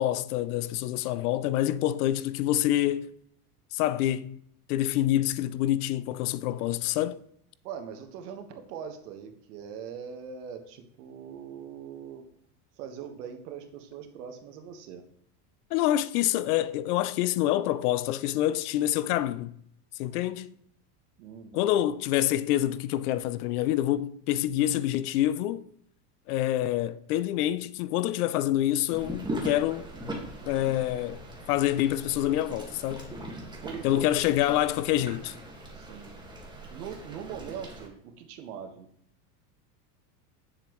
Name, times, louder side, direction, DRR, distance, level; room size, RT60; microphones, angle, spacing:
voice 1, 0.0-3.1 3.7-4.4 4.7-7.2 15.7-19.5 19.9-20.5 21.5-25.7 26.3-29.9 30.4-31.2 31.5-33.1 33.8-35.4, left 13 dB, 70° left, 0.6 m, -27 dB
voice 2, 7.6-12.3 12.8-15.0 21.2-21.6 33.6-34.2 35.7-36.1 36.7-38.9, right 7 dB, 70° right, 1.6 m, -41 dB
sound 1, 28.9-37.9, right 1 dB, 10° right, 1.8 m, -40 dB
8.7 x 7.4 x 3.1 m
supercardioid pair, 120°, 48 cm